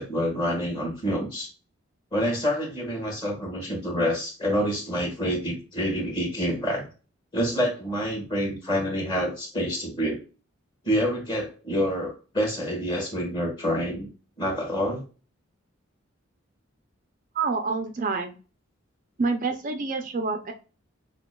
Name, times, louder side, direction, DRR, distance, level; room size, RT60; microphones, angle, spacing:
voice 1, 0.0-1.5 2.1-6.9 7.3-10.2 10.8-14.1 14.4-15.0, equal, 25° left, 1 dB, 1.5 m, -27 dB
voice 2, 17.3-18.3 19.2-20.5, right 4 dB, 40° right, 5 dB, 0.4 m, -27 dB
5.8 x 2.2 x 2.2 m, 0.34 s
head